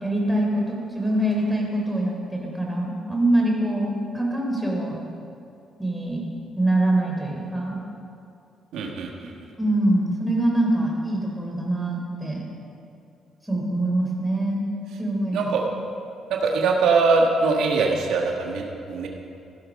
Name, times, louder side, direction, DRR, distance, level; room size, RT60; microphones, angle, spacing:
voice 1, 0.0-5.1 5.8-6.3 6.6-7.8 9.6-12.4 13.5-14.6 15.0-15.5, right 1 dB, 5° right, -2 dB, 3.7 m, -24 dB
voice 2, 8.7-9.3 15.3-15.6 16.4-19.1, right 4 dB, 85° right, 0 dB, 1.5 m, -22 dB
15.5 x 11.5 x 5.4 m, 2.6 s
cardioid pair, 90°, 0 cm